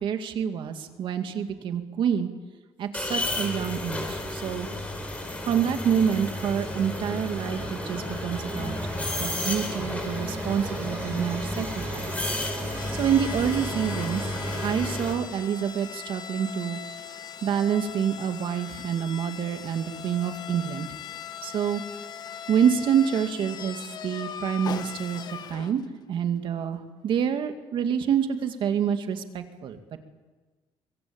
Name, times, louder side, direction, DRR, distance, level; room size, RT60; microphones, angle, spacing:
voice 1, 0.0-2.3 2.8-4.7 5.5-8.8 9.2-12.1 13.0-14.2 14.6-16.8 17.4-20.9 21.4-21.8 22.5-25.2 25.5-25.8 26.1-30.0, right 8 dB, 60° right, 7 dB, 2.3 m, -27 dB
sound 1, 2.9-15.1, left 1 dB, 15° left, 5.0 m, -32 dB
sound 2, 4.7-14.7, right 2 dB, 25° right, 7.0 m, -39 dB
sound 3, 12.8-26.0, left 8 dB, 45° left, 1.3 m, -40 dB
24.0 x 23.0 x 8.9 m, 1.3 s
cardioid pair, 155°, 10 cm